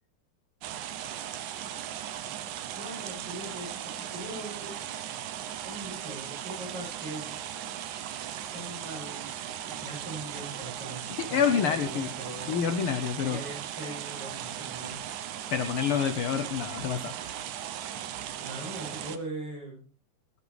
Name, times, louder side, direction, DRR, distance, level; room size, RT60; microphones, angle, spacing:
sound 1, 0.6-19.2, right 10 dB, 75° right, 2.4 m, -38 dB
voice 1, 2.1-2.4 2.7-4.8 5.6-7.4 8.4-12.6 13.2-15.0 18.4-19.9, right 1 dB, 45° right, -1 dB, 8.9 m, -41 dB
voice 2, 11.3-12.1 12.5-13.4 15.5-17.4, left 7 dB, 75° left, 9 dB, 1.2 m, -27 dB
19.0 x 13.5 x 3.4 m, 0.37 s
omnidirectional pair, 3.6 m